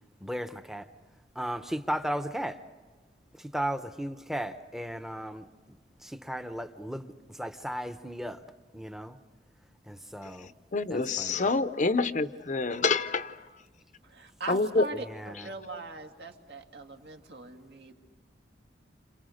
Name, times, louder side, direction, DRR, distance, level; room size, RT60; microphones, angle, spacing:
voice 1, 0.2-0.9 1.3-2.6 3.3-8.4 8.7-9.2 9.9-10.5 10.9-11.5 14.9-15.5, equal, ahead, 0.8 m, -36 dB
voice 2, 10.4-13.4 14.5-14.8, left 3 dB, 45° left, 0.7 m, -27 dB
voice 3, 14.0-17.9, right 2 dB, 70° right, 2.3 m, -41 dB
29.5 x 27.0 x 6.5 m
head